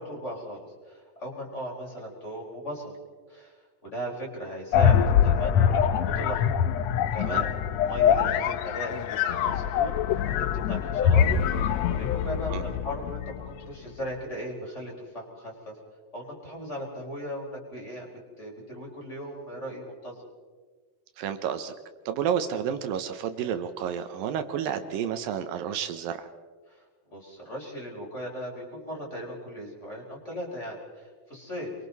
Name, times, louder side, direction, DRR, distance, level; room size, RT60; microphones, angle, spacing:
voice 1, 0.0-3.0 3.3-6.4 7.1-7.5 7.8-10.0 10.4-11.3 11.8-15.7 16.1-20.3 26.7-31.7, equal, 20° left, -2 dB, 4.4 m, -37 dB
sound 1, 4.7-13.5, left 8 dB, 90° left, 1.5 m, -24 dB
voice 2, 21.2-21.7 22.1-26.3, right 8 dB, 80° right, 9 dB, 2.7 m, -30 dB
29.0 x 23.0 x 4.1 m, 1.5 s
omnidirectional pair, 4.1 m